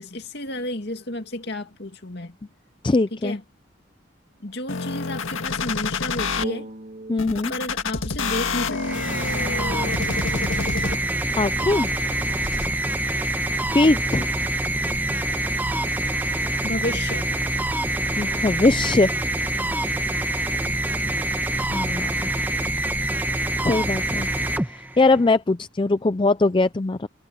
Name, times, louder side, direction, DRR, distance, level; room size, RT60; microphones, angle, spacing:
voice 1, 0.0-2.4 3.1-3.4 4.4-6.7 7.5-9.1 16.6-17.4, left 1 dB, 55° left, 2.3 m, -31 dB
voice 2, 2.8-3.4 7.1-7.5 11.4-12.0 13.7-14.3 18.2-19.1 21.7-22.3 23.6-24.3 24.7-27.1, left 2 dB, 25° left, 0.4 m, -21 dB
sound 1, 4.7-6.4 7.2-11.2 11.7-12.7, left 4 dB, 90° left, 1.9 m, -28 dB
sound 2, 6.4-10.1, right 2 dB, 45° right, 3.1 m, -41 dB
sound 3, 8.7-25.3, right 1 dB, 10° right, 1.1 m, -25 dB
head